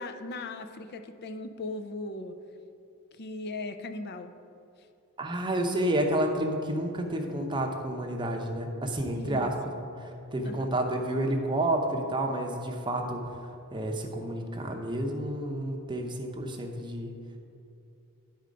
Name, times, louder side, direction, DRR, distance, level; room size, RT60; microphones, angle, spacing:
voice 1, 0.0-2.4 3.1-4.3 9.1-9.8 10.4-10.7, left 2 dB, 45° left, 8 dB, 0.4 m, -38 dB
voice 2, 5.2-13.4 13.7-17.1, right 1 dB, 20° right, 2 dB, 0.7 m, -30 dB
9.5 x 4.3 x 5.1 m, 2.7 s
head